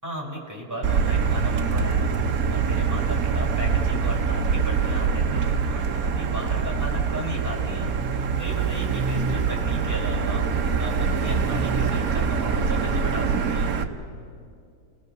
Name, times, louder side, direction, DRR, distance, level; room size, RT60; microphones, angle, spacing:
voice 1, 0.0-2.1 2.5-13.7, equal, 10° right, -3 dB, 4.6 m, -35 dB
Motor vehicle (road), 0.8-13.8, right 5 dB, 55° right, 1.2 m, -24 dB
29.5 x 19.0 x 6.6 m, 2.4 s
omnidirectional pair, 2.1 m